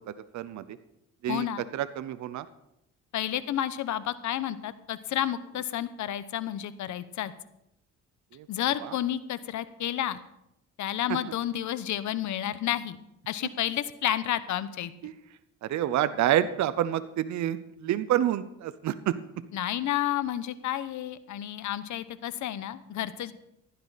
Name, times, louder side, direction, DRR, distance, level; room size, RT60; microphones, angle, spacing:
voice 1, 0.1-0.6 1.2-1.5 1.7-2.5 8.3-8.5 8.8-8.9 15.0-15.1 15.6-19.2, right 11 dB, 70° right, 13 dB, 0.7 m, -28 dB
voice 2, 1.3-1.6 3.1-7.3 8.5-10.2 10.8-14.9 19.5-23.3, left 11 dB, 70° left, 15 dB, 0.9 m, -31 dB
15.5 x 11.5 x 4.1 m, 0.84 s
cardioid pair, 90°, 30 cm